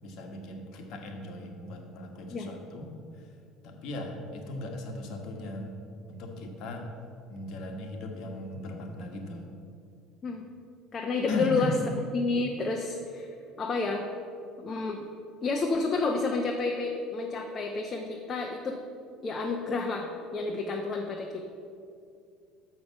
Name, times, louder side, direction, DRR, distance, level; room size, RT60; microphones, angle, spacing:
voice 1, 0.0-2.9 3.2-3.3 3.6-5.7 6.1-6.9 7.3-9.5 11.3-11.8, left 1 dB, 55° left, 3 dB, 1.2 m, -37 dB
voice 2, 10.9-11.7 12.1-13.3 13.6-14.0 14.6-15.0 15.4-18.8 19.2-21.4, left 3 dB, 35° left, 1 dB, 0.8 m, -30 dB
6.4 x 6.2 x 7.0 m, 2.4 s
figure-of-eight pair, 65°, 0 cm